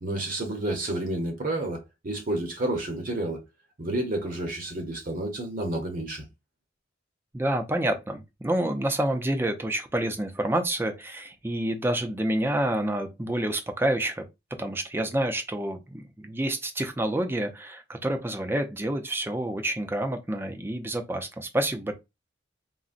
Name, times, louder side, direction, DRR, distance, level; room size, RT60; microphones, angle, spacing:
voice 1, 0.0-3.4 3.8-6.3, right 1 dB, 45° right, 0.7 m, -30 dB
voice 2, 7.3-14.2 14.6-21.9, right 1 dB, 10° right, 0.4 m, -28 dB
3.8 x 2.0 x 2.4 m
head